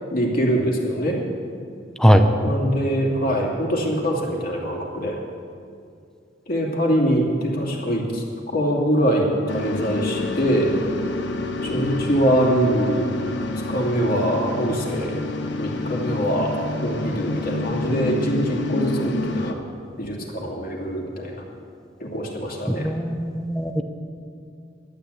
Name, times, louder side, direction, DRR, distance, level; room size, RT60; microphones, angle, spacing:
voice 1, 0.1-1.2 2.4-5.2 6.5-10.7 11.6-15.2 15.6-16.5 16.8-19.6 20.0-21.4 22.0-22.9, equal, 50° left, -1 dB, 2.6 m, -23 dB
sound 1, 9.5-19.5, left 2 dB, 70° left, 1.0 m, -28 dB
voice 2, 22.7-23.8, equal, 5° left, 6 dB, 0.8 m, -18 dB
12.0 x 10.5 x 8.2 m, 2.4 s
head